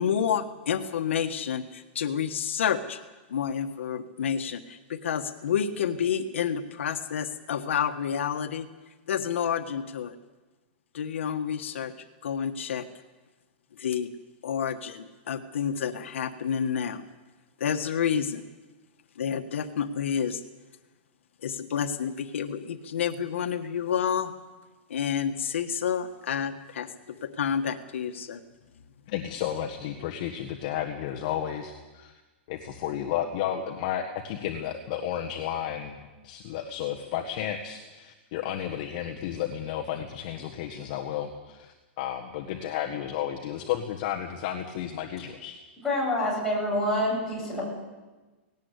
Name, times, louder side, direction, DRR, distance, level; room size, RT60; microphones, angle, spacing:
voice 1, 0.0-3.0 3.3-8.7 9.1-10.1 10.9-11.9 12.2-12.9 13.8-14.1 14.4-17.0 17.6-18.4 19.2-20.4 21.4-24.3 24.9-28.4, left 8 dB, 85° left, 7 dB, 1.4 m, -29 dB
voice 2, 29.1-32.2 32.5-45.6, left 10 dB, 40° left, 1 dB, 1.5 m, -32 dB
voice 3, 45.8-47.7, left 1 dB, 5° left, -5 dB, 7.7 m, -27 dB
18.5 x 18.0 x 8.2 m, 1.2 s
supercardioid pair, 170°, 7 cm